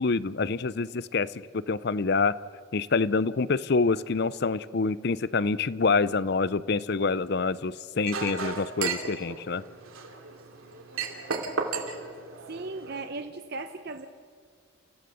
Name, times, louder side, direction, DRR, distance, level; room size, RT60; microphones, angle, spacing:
voice 1, 0.0-2.4 2.7-9.6, left 4 dB, 50° left, 18 dB, 0.5 m, -26 dB
Chink clink, 8.0-13.0, right 4 dB, 85° right, 2.5 m, -34 dB
voice 2, 12.5-14.1, right 3 dB, 50° right, 8 dB, 0.7 m, -37 dB
30.0 x 16.0 x 6.9 m, 2.1 s
head